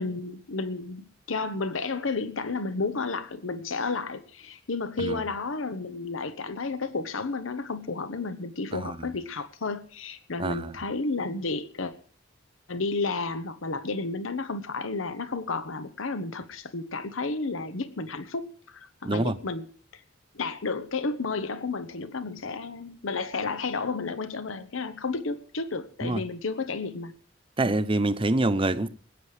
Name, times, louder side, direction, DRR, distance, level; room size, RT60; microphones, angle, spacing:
voice 1, 0.0-11.9 12.7-19.6 19.9-20.0 20.3-27.1, left 3 dB, 90° left, 0.9 m, -32 dB
voice 2, 10.4-10.8 19.0-19.4 26.0-26.2 27.6-28.9, right 2 dB, 25° right, 0.7 m, -26 dB
20.0 x 9.5 x 4.9 m
head